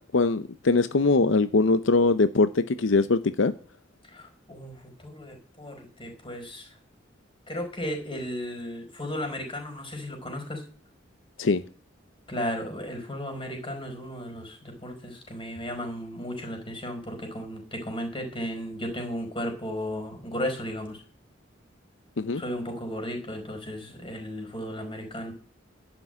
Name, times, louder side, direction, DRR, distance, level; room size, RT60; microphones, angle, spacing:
voice 1, 0.0-3.5 11.4-11.6 22.2-22.4, left 3 dB, 85° left, 0.7 m, -22 dB
voice 2, 4.1-6.7 7.5-10.6 12.3-21.0 22.3-25.3, equal, 25° left, 4.9 m, -35 dB
12.0 x 6.1 x 9.2 m
head